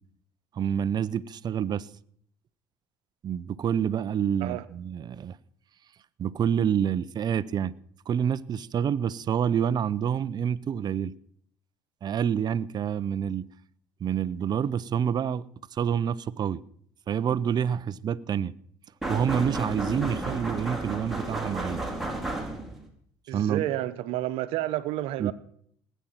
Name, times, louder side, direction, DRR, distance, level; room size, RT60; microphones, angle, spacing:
voice 1, 0.5-1.9 3.2-5.4 6.2-7.7 8.1-11.1 12.0-13.5 14.0-15.4 15.7-16.6 17.1-18.5 19.1-21.8 23.3-23.7 25.2-25.3, right 8 dB, 45° right, 0.7 m, -27 dB
sound 1, 19.0-22.9, right 2 dB, ahead, 3.6 m, -32 dB
voice 2, 23.3-25.3, right 14 dB, 75° right, 1.1 m, -30 dB
19.0 x 9.2 x 5.8 m
supercardioid pair, 75°, 10 cm